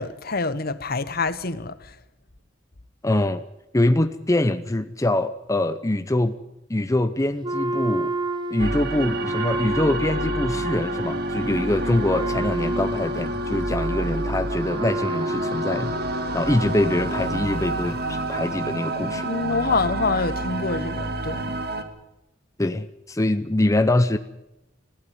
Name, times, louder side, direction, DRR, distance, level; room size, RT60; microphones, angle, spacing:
voice 1, 0.0-2.0 19.1-21.5, left 3 dB, 55° left, 1.2 m, -26 dB
voice 2, 3.0-3.4 3.7-6.4 6.7-8.2 8.5-19.3 22.6-24.2, left 1 dB, 15° left, 0.7 m, -24 dB
Wind instrument woodwind instrument, 7.4-16.2, equal, 25° right, 1.4 m, -29 dB
sound 1, 8.6-21.8, right 2 dB, 55° right, 2.1 m, -29 dB
20.5 x 15.5 x 9.6 m
head